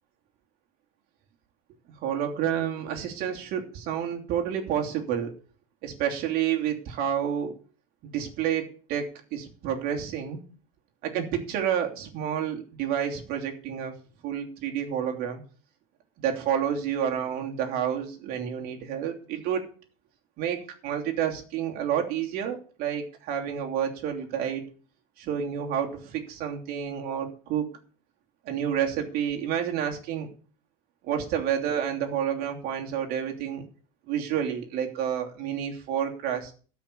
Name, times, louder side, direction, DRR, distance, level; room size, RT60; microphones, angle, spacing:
voice 1, 2.0-5.3 5.8-7.5 8.0-10.4 11.0-13.9 14.2-15.4 16.2-19.7 20.4-24.6 25.2-27.7 28.4-30.3 31.0-33.7 34.1-36.5, right 9 dB, 55° right, 3 dB, 3.0 m, -29 dB
13.0 x 6.0 x 8.5 m, 0.40 s
supercardioid pair, 115°, 18 cm